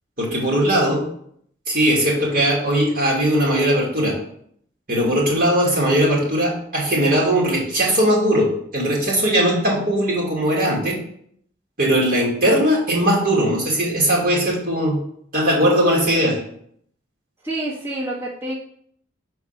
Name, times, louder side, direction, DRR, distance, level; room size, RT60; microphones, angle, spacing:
voice 1, 0.2-1.0 1.7-4.1 4.9-8.5 8.7-11.0 11.8-15.0 15.3-16.4, right 1 dB, 50° right, -4 dB, 2.7 m, -19 dB
voice 2, 17.4-18.5, right 1 dB, 15° right, -9 dB, 2.0 m, -27 dB
6.4 x 4.7 x 6.0 m, 0.66 s
head